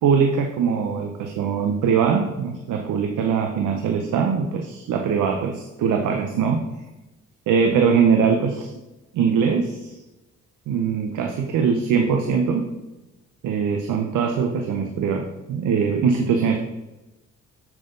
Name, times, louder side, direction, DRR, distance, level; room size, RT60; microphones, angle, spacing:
voice 1, 0.0-6.6 7.5-8.7 9.1-10.0 10.7-12.7 13.4-16.6, right 6 dB, 80° right, 3 dB, 1.0 m, -22 dB
7.6 x 7.5 x 4.0 m, 1.0 s
cardioid pair, 90°, 30 cm